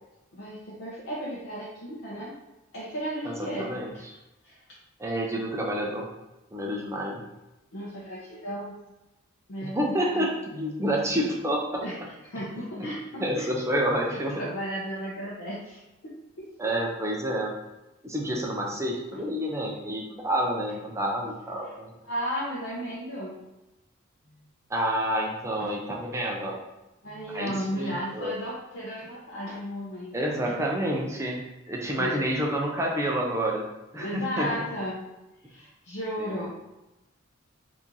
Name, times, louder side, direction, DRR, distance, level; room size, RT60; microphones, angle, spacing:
voice 1, 0.3-2.3 2.7-4.1 4.4-4.6 7.7-8.8 9.5-10.3 10.5-10.8 11.8-12.0 12.2-13.5 14.1-16.7 22.0-23.4 25.6-25.7 27.0-30.1 32.0-32.1 34.0-35.0 35.4-36.5, equal, 65° left, -7 dB, 0.7 m, -34 dB
voice 2, 3.2-3.9 5.0-6.1 6.5-7.2 9.6-11.8 12.5-12.9 13.2-14.4 16.6-17.6 18.0-21.9 24.7-26.6 27.3-28.3 30.1-33.7 33.9-34.6 36.2-36.5, equal, 15° right, -1 dB, 0.5 m, -29 dB
2.9 x 2.6 x 3.7 m, 0.97 s
head